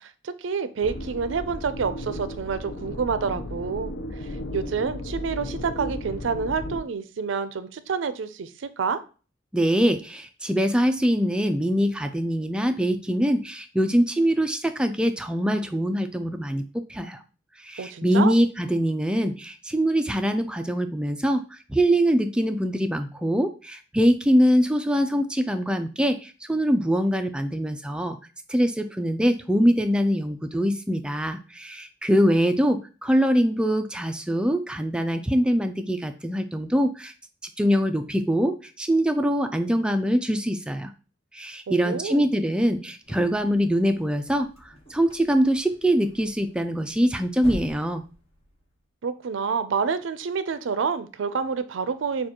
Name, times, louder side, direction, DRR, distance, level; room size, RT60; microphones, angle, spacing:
voice 1, 0.0-4.0 4.5-9.0 17.8-18.3 41.7-42.3 49.0-52.3, right 5 dB, 75° right, 13 dB, 0.4 m, -28 dB
sound 1, 0.8-6.8, left 1 dB, 65° left, 0.5 m, -35 dB
voice 2, 9.5-16.6 16.9-17.2 17.6-28.2 28.5-37.1 37.6-40.9 41.3-48.0, equal, 5° right, 7 dB, 0.3 m, -23 dB
sound 2, 43.0-48.9, equal, 30° left, 1.2 m, -45 dB
6.5 x 2.3 x 2.9 m, 0.35 s
head